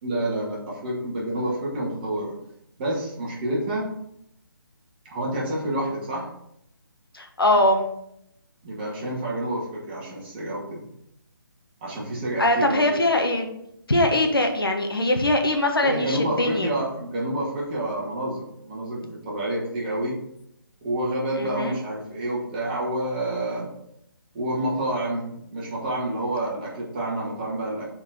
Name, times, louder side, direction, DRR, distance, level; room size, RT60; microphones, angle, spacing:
voice 1, 0.0-2.3 2.8-3.9 5.0-6.3 8.6-10.9 11.8-12.9 15.8-20.2 20.8-23.7 24.3-27.8, right 1 dB, 25° right, -4 dB, 2.2 m, -28 dB
voice 2, 7.1-7.8 12.4-13.5 13.9-16.7 21.4-21.8, left 1 dB, 75° left, 4 dB, 1.3 m, -22 dB
6.8 x 4.5 x 4.8 m, 0.77 s
figure-of-eight pair, 145°, 12 cm